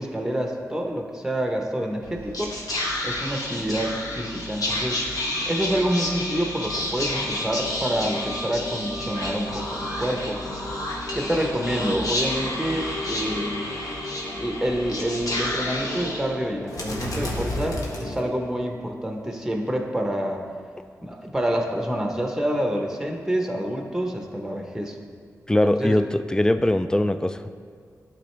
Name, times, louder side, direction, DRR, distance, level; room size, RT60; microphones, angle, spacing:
voice 1, 0.0-2.5 3.0-5.0 5.5-10.4 11.1-13.7 14.4-20.5 21.0-25.0 25.6-26.0, right 1 dB, 5° right, 2 dB, 0.9 m, -27 dB
Whispering, 2.0-18.6, left 1 dB, 70° left, 1.2 m, -30 dB
Wind instrument woodwind instrument, 5.8-10.1, right 2 dB, 40° left, 1.9 m, -42 dB
voice 2, 25.5-27.6, left 1 dB, 10° left, 11 dB, 0.3 m, -21 dB
11.5 x 4.0 x 3.3 m, 2.1 s
cardioid pair, 65°, 6 cm